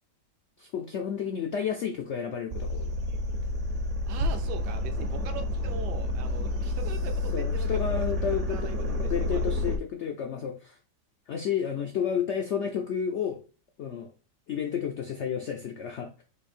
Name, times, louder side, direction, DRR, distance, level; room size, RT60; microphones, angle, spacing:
voice 1, 0.6-2.9 7.3-10.8 11.3-13.4 13.8-14.1 14.5-16.2, left 7 dB, 80° left, 4 dB, 0.6 m, -31 dB
sound 1, 2.5-9.8, left 2 dB, 55° right, 1.0 m, -29 dB
voice 2, 4.1-7.7 7.9-9.6, right 7 dB, 75° right, 6 dB, 1.3 m, -41 dB
4.3 x 2.7 x 4.2 m, 0.35 s
omnidirectional pair, 1.8 m